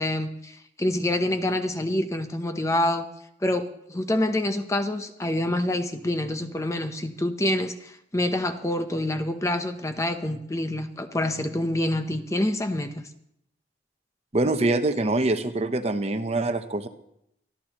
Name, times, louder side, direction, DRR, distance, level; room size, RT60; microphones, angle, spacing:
voice 1, 0.0-3.0 3.4-13.1, left 1 dB, 15° left, 7 dB, 0.7 m, -27 dB
voice 2, 14.3-16.9, right 2 dB, 35° right, 8 dB, 0.8 m, -24 dB
23.0 x 13.5 x 3.0 m, 0.76 s
head